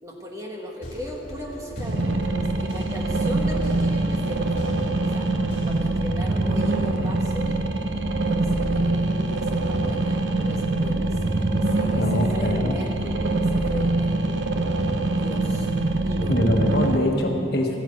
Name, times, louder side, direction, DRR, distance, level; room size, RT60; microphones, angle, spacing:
voice 1, 0.0-5.3 5.6-7.7 8.3-14.5 15.1-15.7 16.0-16.5, equal, 15° right, 0 dB, 1.4 m, -37 dB
sound 1, 0.8-6.0, left 1 dB, 40° left, 2.8 m, -39 dB
sound 2, 1.8-17.0, right 2 dB, 75° right, 0.9 m, -24 dB
voice 2, 12.0-12.7 16.3-17.7, left 1 dB, 55° left, 1 dB, 1.6 m, -23 dB
13.0 x 9.1 x 8.5 m, 2.8 s
head